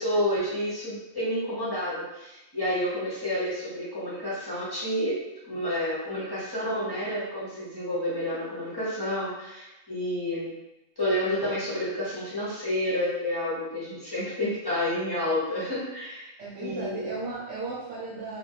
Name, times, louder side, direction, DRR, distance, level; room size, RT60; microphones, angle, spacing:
voice 1, 0.0-5.2 5.5-10.5 11.0-16.3 16.6-17.1, left 1 dB, 30° left, -9 dB, 0.4 m, -29 dB
voice 2, 16.4-18.4, right 3 dB, 70° right, -6 dB, 0.9 m, -35 dB
2.2 x 2.2 x 2.7 m, 0.95 s
omnidirectional pair, 1.3 m